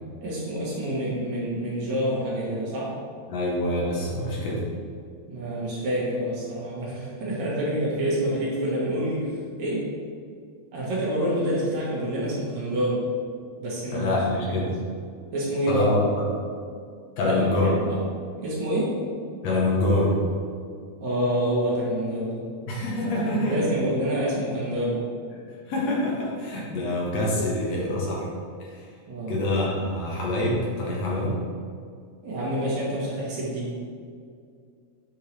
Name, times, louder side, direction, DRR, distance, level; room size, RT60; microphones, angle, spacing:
voice 1, 0.2-2.9 5.3-9.3 9.6-9.8 10.7-13.0 13.6-14.2 15.3-15.9 17.2-18.0 18.4-18.9 21.0-22.5 23.0-25.0 29.1-29.3 32.2-33.7, right 1 dB, 70° right, -6 dB, 2.8 m, -27 dB
voice 2, 3.3-4.6 13.9-14.7 15.7-16.2 17.2-17.7 19.4-20.1 22.7-23.8 25.7-28.3 28.6-28.9 29.3-31.4, left 1 dB, 65° left, -4 dB, 2.1 m, -25 dB
8.3 x 4.5 x 3.3 m, 2.2 s
omnidirectional pair, 3.4 m